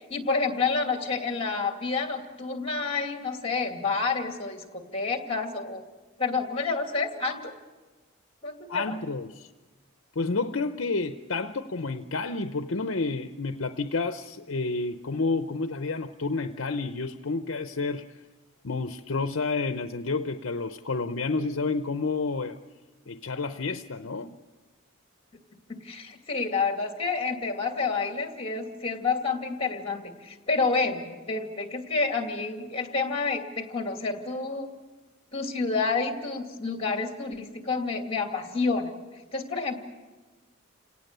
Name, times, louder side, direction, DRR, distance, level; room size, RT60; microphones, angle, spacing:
voice 1, 0.1-5.8 6.2-7.4 8.4-9.0 25.7-34.7 35.3-38.9 39.3-39.8, left 4 dB, 25° left, 4 dB, 2.4 m, -29 dB
voice 2, 8.7-9.5 10.2-18.0 18.6-22.6 23.1-24.4, left 3 dB, 65° left, 9 dB, 0.7 m, -30 dB
29.5 x 18.0 x 6.8 m, 1.3 s
head